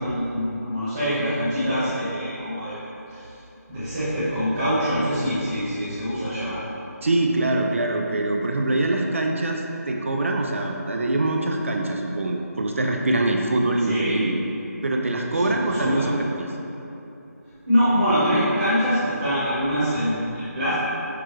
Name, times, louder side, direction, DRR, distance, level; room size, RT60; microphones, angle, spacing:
voice 1, 0.0-2.8 3.1-3.2 3.7-6.6 13.9-14.1 15.4-16.0 17.7-20.7, equal, 20° right, -16 dB, 1.1 m, -24 dB
voice 2, 7.0-14.5 14.8-16.5, right 2 dB, 50° right, 1 dB, 0.3 m, -24 dB
6.4 x 2.3 x 3.0 m, 2.9 s
figure-of-eight pair, 175°, 9 cm